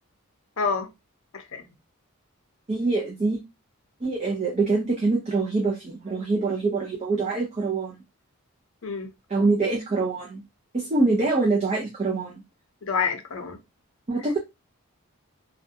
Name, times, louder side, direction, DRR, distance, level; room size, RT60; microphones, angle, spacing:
voice 1, 0.6-0.9 1.3-1.7 8.8-9.1 12.8-13.6, left 5 dB, 70° left, 0.6 m, -28 dB
voice 2, 2.7-3.4 4.0-8.0 9.3-10.4 10.7-12.4 14.1-14.4, right 3 dB, 30° right, 0.5 m, -24 dB
2.5 x 2.2 x 2.6 m
head